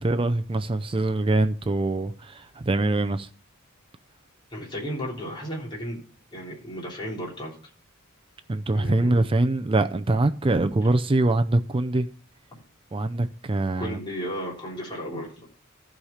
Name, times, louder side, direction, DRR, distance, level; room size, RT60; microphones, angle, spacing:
voice 1, 0.0-3.3 8.5-12.1 12.9-14.0, right 2 dB, 25° right, 0.5 m, -23 dB
voice 2, 4.5-6.0 6.3-7.6 8.7-9.2 13.8-15.3, equal, 20° left, 3.3 m, -34 dB
14.5 x 5.0 x 5.6 m
head